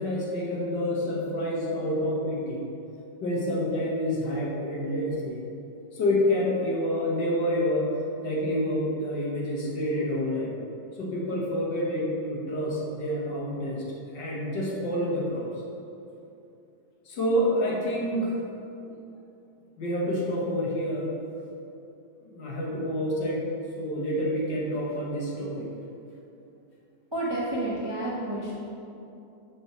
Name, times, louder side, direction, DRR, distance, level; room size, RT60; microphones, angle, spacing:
voice 1, 0.0-2.6 3.2-5.4 5.9-7.9 8.2-10.5 10.9-13.8 14.1-15.5 17.1-18.4 19.8-21.1 22.2-23.4 23.7-25.7, equal, 65° left, -5 dB, 1.9 m, -28 dB
voice 2, 27.1-28.5, right 1 dB, 20° right, -7 dB, 0.9 m, -30 dB
6.2 x 4.6 x 6.1 m, 2.7 s
omnidirectional pair, 2.1 m